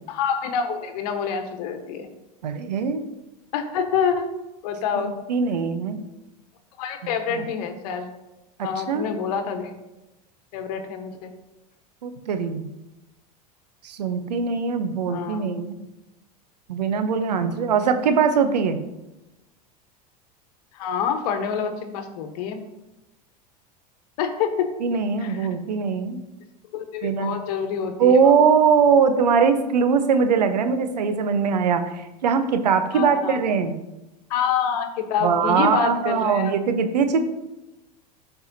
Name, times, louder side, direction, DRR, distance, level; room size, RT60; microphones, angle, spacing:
voice 1, 0.1-2.1 3.5-4.3 4.6-5.1 6.8-8.1 8.6-9.8 10.5-11.3 15.1-15.5 20.7-22.6 24.2-24.7 25.2-25.5 26.7-28.3 32.9-33.4 34.3-36.5, left 7 dB, 65° left, 7 dB, 1.2 m, -27 dB
voice 2, 2.4-3.0 5.0-6.0 7.3-7.4 8.6-9.1 12.0-12.7 13.8-15.8 16.7-18.8 24.8-26.2 27.0-27.4 28.0-33.7 35.2-37.2, right 6 dB, 85° right, 8 dB, 0.8 m, -21 dB
12.5 x 4.8 x 2.8 m, 0.97 s
hypercardioid pair, 90°, 21 cm